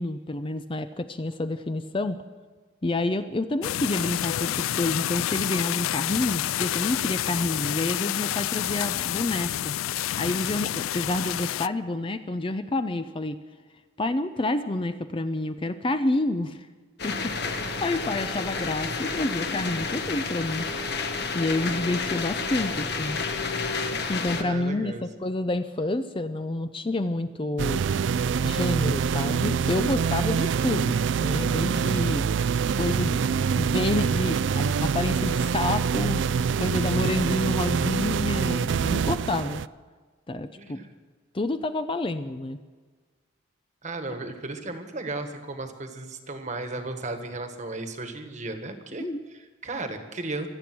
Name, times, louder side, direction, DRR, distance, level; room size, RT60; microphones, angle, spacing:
voice 1, 0.0-2.2 2.8-9.7 10.2-13.4 14.0-16.7 17.0-20.7 21.3-23.2 24.1-27.8 28.4-32.3 32.7-33.2 33.6-36.2 36.6-39.6 40.3-40.8 41.3-42.6 49.0-49.2, left 2 dB, 25° left, 10 dB, 0.5 m, -29 dB
sound 1, 3.6-11.7, left 12 dB, 85° left, 0.3 m, -28 dB
sound 2, 17.0-24.4, left 4 dB, 55° left, 1.3 m, -30 dB
voice 2, 24.4-25.0 40.6-40.9 43.8-50.5, right 2 dB, 35° right, 7 dB, 1.5 m, -35 dB
sound 3, 27.6-39.7, right 6 dB, 65° right, 0.3 m, -25 dB
25.0 x 8.7 x 6.1 m, 1.4 s
head